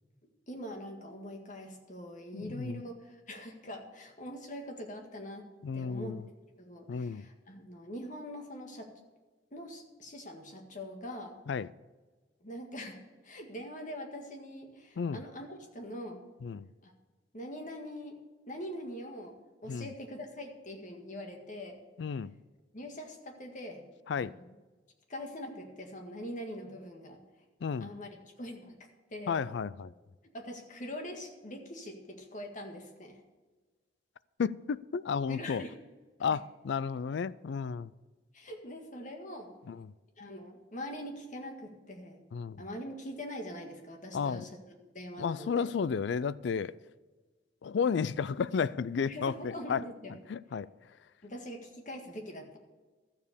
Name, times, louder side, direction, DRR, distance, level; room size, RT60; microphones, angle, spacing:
voice 1, 0.5-6.2 6.6-8.9 9.5-11.4 12.4-16.2 16.8-16.9 17.3-18.2 18.5-19.4 19.6-21.8 22.7-23.8 24.4-24.5 25.1-27.2 27.8-28.1 28.4-28.8 29.1-29.4 30.3-33.2 35.3-35.7 38.3-39.6 40.2-42.2 42.6-44.5 44.9-45.7 49.1-50.1 51.2-52.6, equal, 45° left, 1.8 m, -43 dB
voice 2, 2.3-2.8 5.6-6.2 6.9-7.3 11.5-11.7 15.0-15.2 16.4-16.7 19.7-19.9 22.0-22.3 24.1-24.3 27.6-27.9 29.3-29.9 34.4-35.6 36.2-37.9 39.7-39.9 42.3-42.7 44.1-44.4 45.2-46.8 47.6-49.8 50.3-50.7, left 6 dB, 65° left, 0.4 m, -32 dB
13.0 x 7.3 x 6.8 m
head